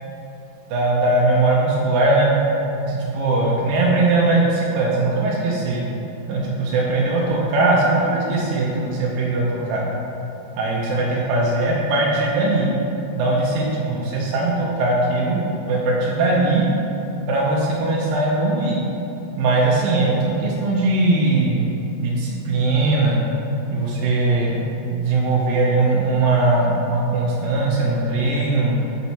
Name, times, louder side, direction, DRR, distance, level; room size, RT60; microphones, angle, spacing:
voice 1, 0.7-2.3 2.9-5.8 6.3-9.8 10.6-12.7 13.2-15.4 15.7-16.6 17.3-18.8 19.4-21.7 22.0-23.2 23.7-24.6 24.9-28.8, right 2 dB, 85° right, -4 dB, 2.0 m, -20 dB
5.8 x 5.2 x 4.2 m, 2.9 s
omnidirectional pair, 4.9 m